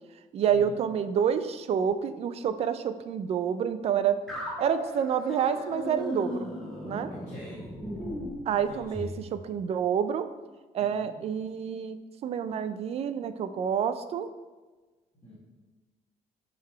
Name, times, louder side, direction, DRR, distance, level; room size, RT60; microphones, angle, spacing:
voice 1, 0.3-4.2 4.6-6.5 6.8-7.1 8.5-10.3 10.7-12.0 12.2-14.3, right 8 dB, 45° right, 11 dB, 0.4 m, -28 dB
sound 1, 4.3-9.2, left 1 dB, ahead, 1.4 m, -37 dB
voice 2, 7.1-8.0 8.7-9.1 10.8-11.1 15.1-15.3, equal, 20° left, -9 dB, 1.9 m, -47 dB
8.4 x 4.0 x 4.4 m, 1.3 s
cardioid pair, 170°, 14 cm